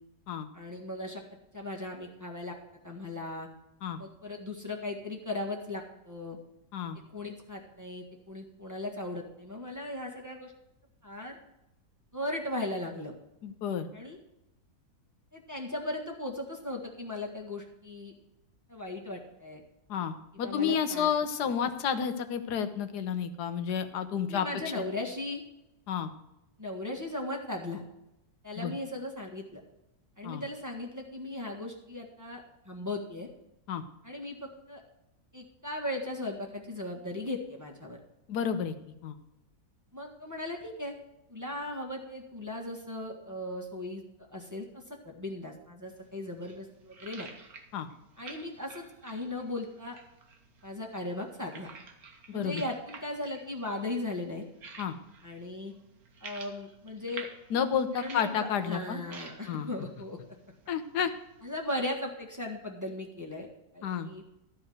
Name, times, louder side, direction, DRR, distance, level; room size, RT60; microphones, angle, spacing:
voice 1, 0.5-1.2 1.5-2.5 2.8-3.5 4.0-6.4 7.1-10.5 11.0-11.4 12.1-13.1 13.9-14.2 15.3-18.1 18.7-19.6 20.4-21.1 21.4-21.5 24.3-25.4 26.6-27.8 28.4-29.6 30.2-33.3 34.0-34.8 35.3-38.0 39.9-40.9 41.3-44.0 44.3-47.3 48.2-50.0 50.6-51.7 52.3-54.4 55.2-55.7 56.2-57.3 57.9-60.2 61.4-63.5 63.7-64.2, left 1 dB, 10° right, -1 dB, 1.5 m, -37 dB
voice 2, 13.4-13.9 19.9-24.5 24.7-24.8 25.9-26.1 28.6-28.7 30.2-30.4 33.7-33.8 38.3-38.7 39.0-39.2 47.7-47.9 52.3-52.6 54.8-54.9 57.5-59.0 59.5-59.7 60.7-61.1 63.8-64.1, left 7 dB, 90° left, 9 dB, 1.5 m, -31 dB
sound 1, 45.9-61.6, right 4 dB, 70° right, 1.7 m, -51 dB
13.0 x 4.8 x 7.7 m, 0.90 s
omnidirectional pair, 1.7 m